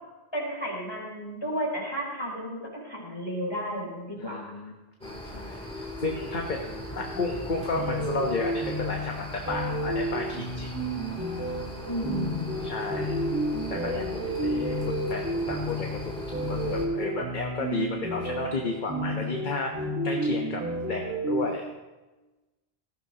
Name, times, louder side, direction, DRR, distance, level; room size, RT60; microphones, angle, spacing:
voice 1, 0.3-4.5 11.8-12.5, equal, 25° left, -3 dB, 4.2 m, -33 dB
voice 2, 4.2-4.7 5.0-10.7 12.6-13.2 13.7-19.7 20.0-21.7, left 3 dB, 45° left, 1 dB, 1.3 m, -33 dB
sound 1, 5.0-16.9, equal, 5° left, 3.0 m, -39 dB
sound 2, 7.7-21.5, equal, 15° right, 1.9 m, -31 dB
18.0 x 15.0 x 2.9 m, 1.1 s
omnidirectional pair, 1.1 m